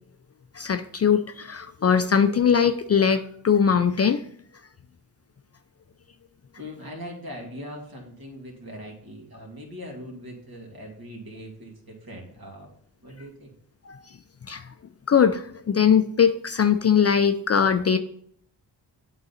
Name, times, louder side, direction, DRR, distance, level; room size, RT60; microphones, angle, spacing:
voice 1, 0.5-4.2 13.9-14.0 14.5-14.6 15.1-18.0, left 7 dB, 35° left, 9 dB, 0.4 m, -21 dB
voice 2, 6.6-12.7 13.0-13.5, equal, 50° right, 0 dB, 2.2 m, -40 dB
8.0 x 3.9 x 4.1 m, 0.66 s
supercardioid pair, 40°, 45 cm